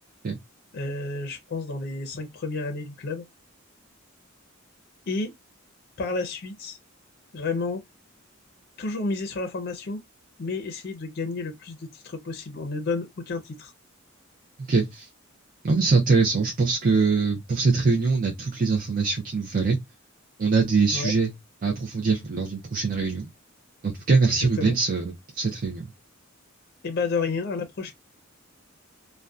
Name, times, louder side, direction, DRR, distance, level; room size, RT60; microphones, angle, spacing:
voice 1, 0.7-3.2 5.1-5.3 6.0-6.8 7.3-7.8 8.8-10.0 10.4-13.7 20.9-21.1 24.3-24.8 26.8-27.9, left 3 dB, 50° left, 0.5 m, -31 dB
voice 2, 14.7-15.1 15.6-19.8 20.4-21.3 21.6-23.3 23.8-25.9, right 4 dB, 40° right, 0.4 m, -23 dB
2.5 x 2.1 x 2.3 m
head